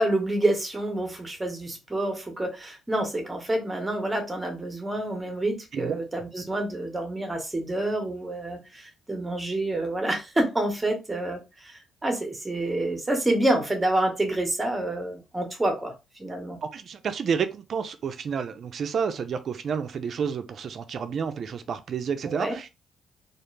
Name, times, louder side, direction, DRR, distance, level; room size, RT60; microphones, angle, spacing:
voice 1, 0.0-15.9 16.2-16.6 22.2-22.5, right 1 dB, 15° right, 0.9 m, -28 dB
voice 2, 16.6-22.7, right 6 dB, 55° right, 0.4 m, -30 dB
2.3 x 2.0 x 3.1 m
cardioid pair, 90°, 0 cm